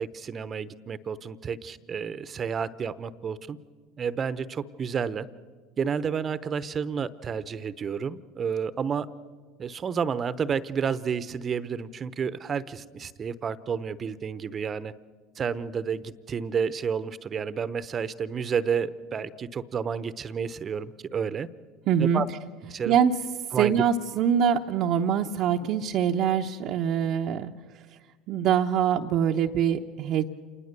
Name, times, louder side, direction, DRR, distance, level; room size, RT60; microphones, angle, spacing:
voice 1, 0.0-3.6 4.0-5.3 5.8-9.1 9.6-14.9 15.4-21.5 22.0-22.3 22.7-23.0 23.5-23.7, right 6 dB, 35° right, 16 dB, 0.9 m, -30 dB
voice 2, 21.9-22.2 22.9-23.1 23.5-27.5 28.3-30.3, right 8 dB, 55° right, 1 dB, 0.9 m, -24 dB
27.5 x 20.0 x 6.8 m, 1.5 s
hypercardioid pair, 80°, 0 cm